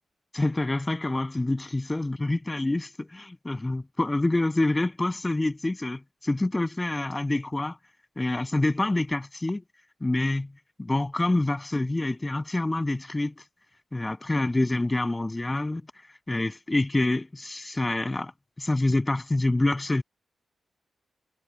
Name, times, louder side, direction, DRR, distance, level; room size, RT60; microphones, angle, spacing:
voice 1, 0.3-7.8 8.2-9.6 10.0-10.5 10.8-13.3 13.9-15.8 16.3-18.3 18.6-20.0, left 2 dB, 15° left, 7.8 m, -26 dB
wide cardioid pair, 130°, 0 cm